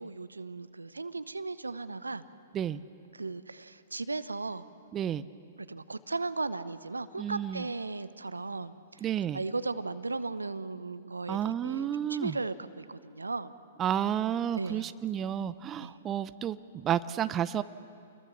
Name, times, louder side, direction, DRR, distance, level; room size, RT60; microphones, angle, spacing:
voice 1, 0.0-2.3 3.1-4.7 5.6-9.0 9.3-13.5 14.6-14.9 15.8-15.9, right 3 dB, 90° right, 14 dB, 0.8 m, -36 dB
voice 2, 4.9-5.2 7.2-7.7 9.0-9.4 11.3-12.4 13.8-17.6, right 10 dB, 25° right, 14 dB, 0.6 m, -31 dB
28.0 x 21.0 x 7.2 m, 2.4 s
figure-of-eight pair, 110°, 0 cm